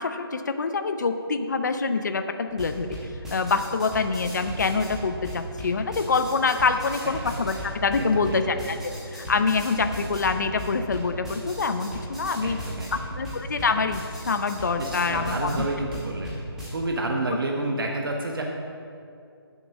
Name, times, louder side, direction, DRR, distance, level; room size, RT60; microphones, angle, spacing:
voice 1, 0.0-3.0 3.3-12.6 12.9-14.0 14.3-15.7, left 4 dB, 45° left, 8 dB, 0.5 m, -25 dB
sound 1, 2.5-16.7, equal, 5° right, 1.0 m, -37 dB
voice 2, 8.0-8.4 12.4-12.9 14.8-16.3 16.7-18.4, right 2 dB, 60° right, 1 dB, 1.0 m, -29 dB
8.5 x 6.7 x 6.3 m, 2.5 s
hypercardioid pair, 175°, 13 cm